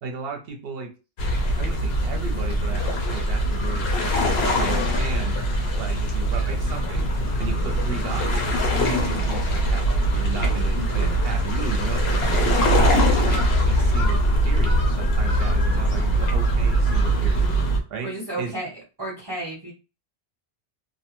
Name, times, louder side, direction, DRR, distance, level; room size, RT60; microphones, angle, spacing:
voice 1, 0.0-0.9 1.6-5.3 5.8-7.1 7.4-8.5 8.7-17.5 17.9-18.1 18.4-18.5, right 6 dB, 65° right, 3 dB, 0.8 m, -35 dB
sound 1, 1.2-17.8, right 1 dB, 65° left, 0.9 m, -22 dB
voice 2, 10.7-11.1 18.0-18.7 19.0-19.7, right 1 dB, 25° right, -4 dB, 0.7 m, -32 dB
2.5 x 2.1 x 2.9 m, 0.32 s
omnidirectional pair, 1.2 m